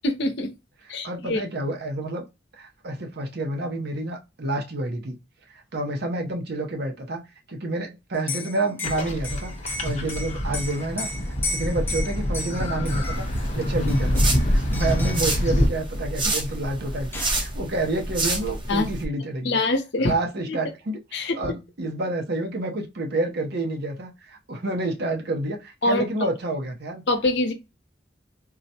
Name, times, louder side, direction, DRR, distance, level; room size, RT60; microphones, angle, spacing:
voice 1, 0.0-0.5 0.9-1.4 9.8-9.9 18.7-18.9 19.4-20.1 20.5-20.6 21.1-21.5 25.8-26.1 27.1-27.5, left 2 dB, 70° left, 0.7 m, -24 dB
voice 2, 1.0-2.2 2.6-5.2 5.5-7.2 7.5-9.5 9.8-11.1 11.5-19.6 20.0-27.0, right 2 dB, 60° right, 0.7 m, -29 dB
Liquid, 8.1-13.4 13.9-14.4 14.7-15.3 16.5-16.6 16.8-17.5, left 2 dB, 10° left, 0.6 m, -35 dB
sound 1, 8.8-15.7, equal, 40° left, 0.9 m, -25 dB
sound 2, 13.1-19.0, right 2 dB, 30° right, 0.7 m, -29 dB
3.9 x 2.0 x 2.8 m
head